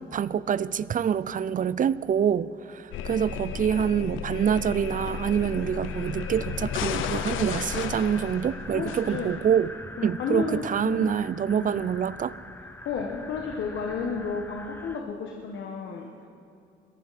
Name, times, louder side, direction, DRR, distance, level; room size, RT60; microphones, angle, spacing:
voice 1, 0.0-9.7 10.0-12.3, right 8 dB, 40° right, 18 dB, 0.5 m, -26 dB
sound 1, 2.9-9.7, left 8 dB, 85° left, 0.7 m, -34 dB
sound 2, 4.6-15.0, left 1 dB, 10° left, 0.9 m, -43 dB
voice 2, 8.7-9.3 10.0-11.1 11.5-11.7 12.8-16.3, left 5 dB, 70° left, 1 dB, 1.4 m, -32 dB
22.5 x 14.0 x 4.2 m, 2.5 s
cardioid pair, 90°, 20 cm